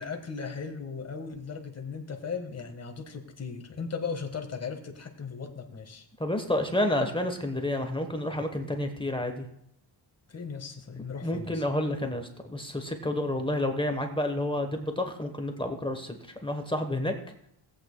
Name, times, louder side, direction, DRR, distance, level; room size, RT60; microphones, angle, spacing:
voice 1, 0.0-6.1 10.3-11.6, left 5 dB, 35° left, 4 dB, 1.5 m, -37 dB
voice 2, 6.2-9.5 11.2-17.1, left 1 dB, 10° left, 5 dB, 1.0 m, -30 dB
17.0 x 8.5 x 2.2 m, 0.72 s
cardioid pair, 100°, 46 cm